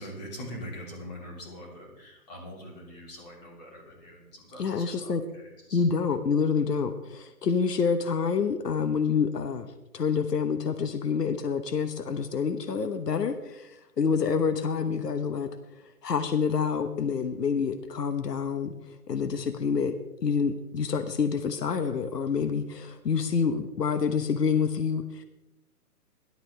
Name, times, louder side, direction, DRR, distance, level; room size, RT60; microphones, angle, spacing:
voice 1, 0.0-5.8, equal, 25° left, -2 dB, 3.2 m, -43 dB
voice 2, 4.6-5.2 5.7-9.7 9.9-15.5 16.0-18.7 19.1-19.9 20.2-25.2, left 6 dB, 85° left, 10 dB, 1.2 m, -27 dB
18.0 x 12.0 x 3.4 m, 0.93 s
hypercardioid pair, 165°, 47 cm